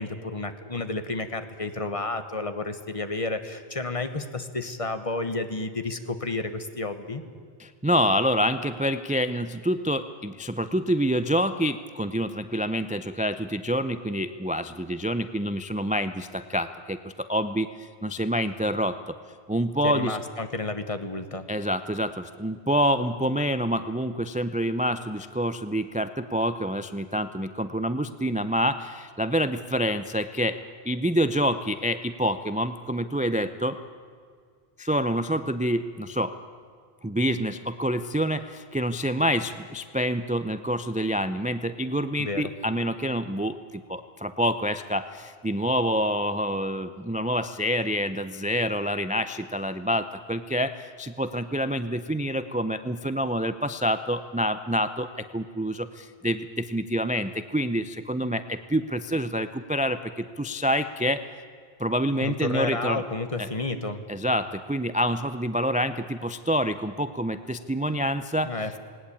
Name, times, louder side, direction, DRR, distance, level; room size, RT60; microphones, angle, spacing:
voice 1, 0.0-7.2 19.8-21.5 42.2-42.5 62.2-64.0 68.4-68.8, left 2 dB, 35° left, 9 dB, 1.3 m, -31 dB
voice 2, 7.6-19.2 19.5-20.2 21.5-30.6 30.8-33.8 34.8-36.3 37.0-61.2 61.8-63.0 63.4-63.5 64.1-68.5, equal, 10° right, 11 dB, 0.4 m, -27 dB
19.0 x 18.5 x 8.6 m, 2.1 s
omnidirectional pair, 1.0 m